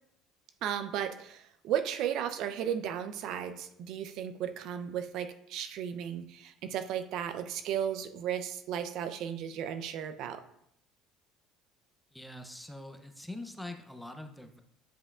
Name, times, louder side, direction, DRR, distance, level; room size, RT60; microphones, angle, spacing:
voice 1, 0.6-10.4, right 9 dB, 60° right, 10 dB, 0.5 m, -35 dB
voice 2, 12.1-14.6, left 1 dB, 5° left, 6 dB, 0.6 m, -44 dB
9.8 x 5.4 x 2.4 m, 0.74 s
cardioid pair, 135°, 0 cm